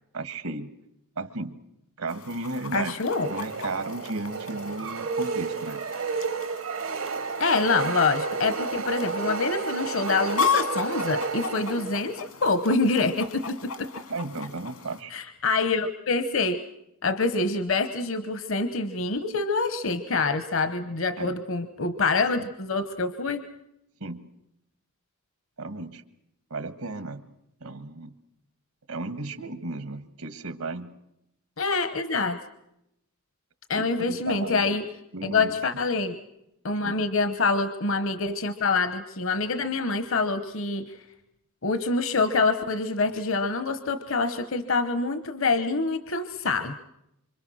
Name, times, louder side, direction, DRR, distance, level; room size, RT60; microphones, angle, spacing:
voice 1, 0.1-0.7 1.2-1.6 2.0-3.0 3.3-5.8 14.1-15.1 21.2-21.3 24.0-24.2 25.6-26.0 26.5-27.2 27.6-28.1 28.9-30.9 33.7-34.8 35.1-35.6 36.8-36.9, right 2 dB, 85° right, 11 dB, 1.7 m, -34 dB
Chicken rooster, 2.1-15.0, left 6 dB, 80° left, 2.2 m, -35 dB
voice 2, 2.7-3.3 7.4-13.9 15.1-16.6 17.0-23.4 31.6-32.4 33.7-34.8 35.2-36.2 36.6-40.9 41.6-46.7, left 3 dB, 65° left, 11 dB, 1.0 m, -26 dB
sound 1, 3.1-12.2, right 4 dB, 65° right, 0.9 m, -31 dB
26.0 x 25.5 x 6.3 m, 0.83 s
head